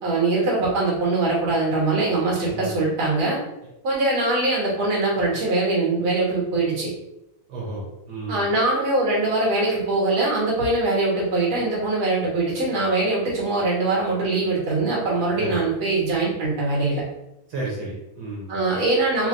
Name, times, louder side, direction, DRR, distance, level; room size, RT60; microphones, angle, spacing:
voice 1, 0.0-3.4 3.8-6.9 8.3-17.0 18.5-19.3, right 2 dB, 85° right, -5 dB, 2.2 m, -22 dB
voice 2, 2.5-2.8 7.5-8.5 15.4-15.6 17.5-18.5, right 2 dB, 65° right, -4 dB, 1.6 m, -32 dB
4.4 x 2.2 x 3.7 m, 0.90 s
omnidirectional pair, 2.2 m